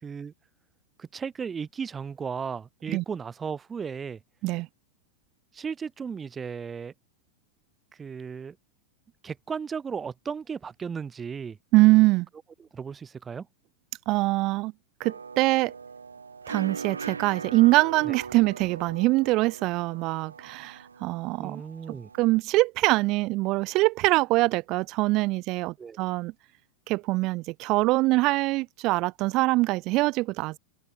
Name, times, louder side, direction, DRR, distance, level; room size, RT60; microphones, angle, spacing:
voice 1, 0.0-0.3 1.0-4.2 5.5-6.9 8.0-8.6 9.2-11.6 12.6-13.5 18.1-18.2 21.4-22.1 25.8-26.0, right 6 dB, 20° right, 1.3 m, -35 dB
voice 2, 11.7-12.3 14.1-14.7 15.0-15.7 16.5-21.6 22.2-26.3 26.9-30.6, right 21 dB, 40° right, 1.2 m, -23 dB
sound 1, 15.0-22.4, right 5 dB, 75° right, 2.4 m, -40 dB
figure-of-eight pair, 90°, 0 cm